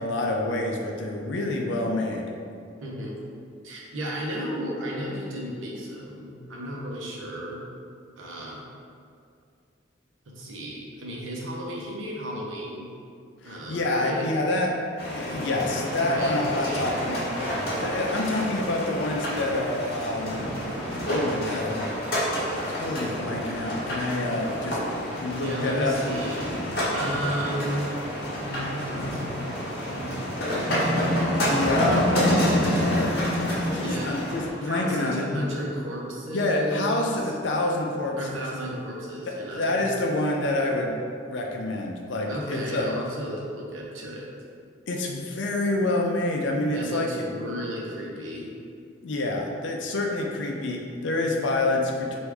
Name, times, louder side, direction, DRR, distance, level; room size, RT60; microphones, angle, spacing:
voice 1, 0.0-2.3 13.4-14.7 15.0-17.2 17.8-20.4 21.1-21.8 22.7-24.8 25.1-25.9 31.4-32.0 32.8-35.3 36.2-38.4 39.5-40.9 41.3-42.9 44.9-47.1 49.0-52.2, left 2 dB, 70° left, 0 dB, 0.5 m, -27 dB
voice 2, 2.8-3.2 3.6-7.6 8.2-8.6 10.3-12.9 13.4-14.3 16.0-17.1 25.4-26.5 26.9-27.9 28.4-30.2 33.8-34.3 34.6-37.2 38.2-40.0 42.3-44.3 46.7-48.5, equal, 85° right, -3 dB, 0.8 m, -34 dB
sound 1, 15.0-34.5, equal, 50° left, 0.9 m, -28 dB
3.4 x 2.6 x 4.6 m, 2.3 s
head